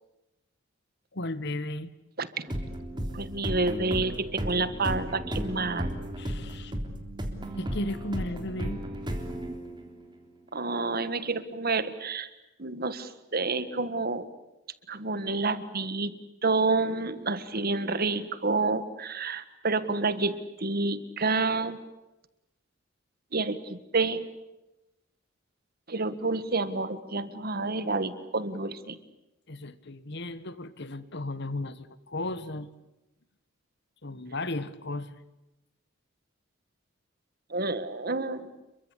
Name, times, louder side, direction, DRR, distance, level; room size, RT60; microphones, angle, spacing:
voice 1, 1.1-1.9 6.2-6.7 7.6-8.8 29.5-32.7 34.0-35.2, left 1 dB, 55° left, 15 dB, 1.5 m, -35 dB
sound 1, 2.5-10.1, equal, 25° right, 3.5 m, -34 dB
voice 2, 3.1-5.9 10.5-12.3 12.6-14.3 14.9-16.1 16.4-21.8 23.3-24.2 25.9-29.0 37.5-38.5, right 3 dB, 50° right, 13 dB, 1.7 m, -29 dB
29.5 x 23.5 x 8.4 m, 0.96 s
head